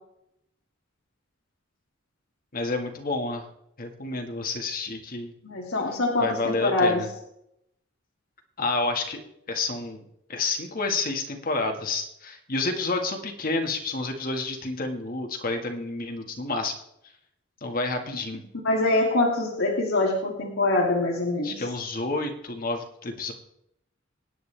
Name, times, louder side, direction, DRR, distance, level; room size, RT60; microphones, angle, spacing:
voice 1, 2.5-3.5 3.8-5.3 6.2-7.1 8.6-9.2 9.5-10.0 10.3-16.8 17.6-18.4 21.4-23.3, left 3 dB, 45° left, 4 dB, 1.7 m, -29 dB
voice 2, 5.4-7.0 18.6-21.6, left 2 dB, 85° left, -2 dB, 2.4 m, -24 dB
25.0 x 9.4 x 3.4 m, 0.79 s
head